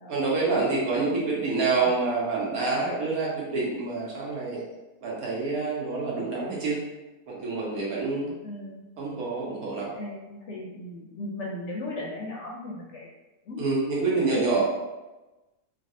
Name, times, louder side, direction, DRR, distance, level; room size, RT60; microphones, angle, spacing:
voice 1, 0.1-4.6 5.0-6.8 7.3-8.3 9.0-9.9 13.6-14.6, right 3 dB, 75° right, -4 dB, 1.3 m, -27 dB
voice 2, 6.1-6.4 8.4-8.9 9.9-13.1 13.5-13.6 14.1-14.6, left 2 dB, 65° left, -3 dB, 0.8 m, -37 dB
3.3 x 2.4 x 2.6 m, 1.1 s
omnidirectional pair, 1.6 m